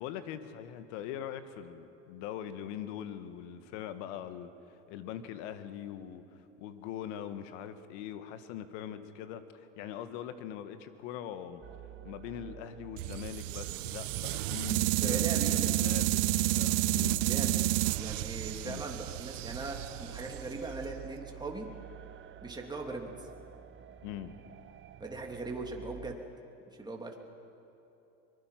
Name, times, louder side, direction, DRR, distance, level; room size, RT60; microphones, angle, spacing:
voice 1, 0.0-6.2 6.6-11.6 12.0-17.3 18.6-18.8 24.0-24.3, left 10 dB, 70° left, 10 dB, 1.7 m, -42 dB
sound 1, 11.6-26.1, right 10 dB, 30° right, 0.9 m, -50 dB
sound 2, 13.0-21.1, right 16 dB, 80° right, 0.6 m, -31 dB
voice 2, 14.9-15.7 17.2-21.7 22.4-23.3 25.0-26.2 26.8-27.2, right 3 dB, 10° right, 0 dB, 3.3 m, -40 dB
24.5 x 21.0 x 6.0 m, 3.0 s
hypercardioid pair, 90°, 38 cm